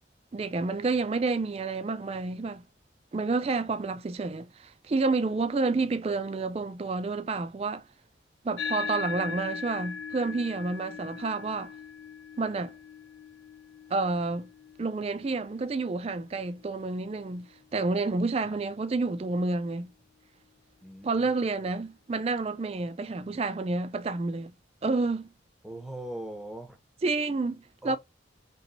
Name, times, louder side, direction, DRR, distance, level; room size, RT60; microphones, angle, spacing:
voice 1, 0.3-2.6 3.1-7.8 8.4-11.7 12.4-12.7 13.9-14.5 14.8-19.9 21.0-24.5 24.8-25.3 27.0-28.0, right 3 dB, 30° right, 0.3 m, -29 dB
sound 1, 8.6-17.3, left 6 dB, 80° left, 0.4 m, -40 dB
voice 2, 20.8-21.4 25.6-26.8 27.8-28.0, right 1 dB, ahead, 0.7 m, -40 dB
3.0 x 3.0 x 4.0 m
head